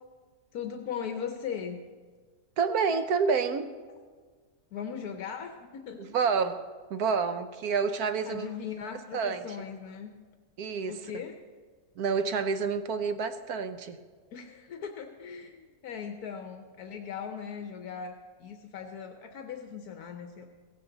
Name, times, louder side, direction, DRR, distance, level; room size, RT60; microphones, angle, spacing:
voice 1, 0.5-1.8 4.7-6.1 8.2-10.1 10.9-11.4 14.3-20.5, left 7 dB, 75° left, 5 dB, 1.4 m, -39 dB
voice 2, 2.6-3.7 6.0-6.6 6.9-8.5 9.1-9.4 10.6-11.0 12.0-14.0, right 5 dB, 75° right, 9 dB, 1.3 m, -28 dB
16.5 x 16.0 x 3.9 m, 1.5 s
omnidirectional pair, 1.6 m